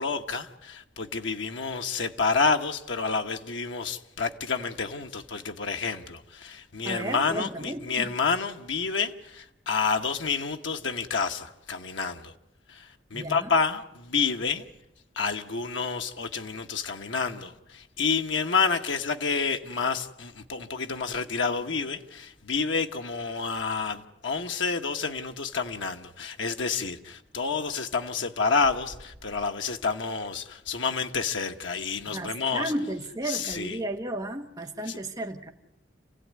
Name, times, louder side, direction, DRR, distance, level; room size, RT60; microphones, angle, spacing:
voice 1, 0.0-12.3 12.7-14.7 15.1-32.7 33.3-33.8 34.9-35.0, left 5 dB, 90° left, 1.2 m, -29 dB
voice 2, 6.8-8.1 13.1-13.5 32.0-35.5, right 1 dB, 20° right, 1.3 m, -33 dB
sound 1, 24.1-24.3 24.8-24.9 25.1-25.2 25.4-25.8 26.4-26.5 26.9-27.6 27.9-30.2, equal, 70° left, 6.1 m, -52 dB
27.5 x 16.0 x 9.4 m
head